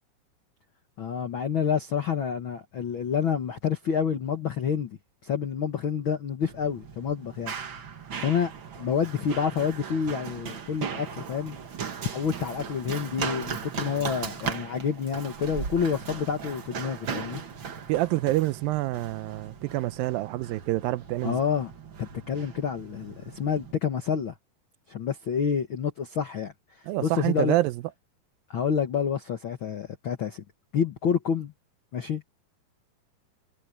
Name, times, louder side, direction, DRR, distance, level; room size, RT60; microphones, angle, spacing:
voice 1, 1.0-7.5 8.2-8.5 8.8-11.6 12.0-17.4 21.2-21.7 22.0-24.3 24.9-26.5 27.0-27.5 28.5-30.4 30.7-31.5 31.9-32.3, left 7 dB, 80° left, 1.1 m, -28 dB
Run, 6.4-23.7, right 6 dB, 45° right, 1.6 m, -38 dB
voice 2, 17.9-21.4 26.9-27.8, right 17 dB, 80° right, 2.3 m, -27 dB
omnidirectional pair, 4.3 m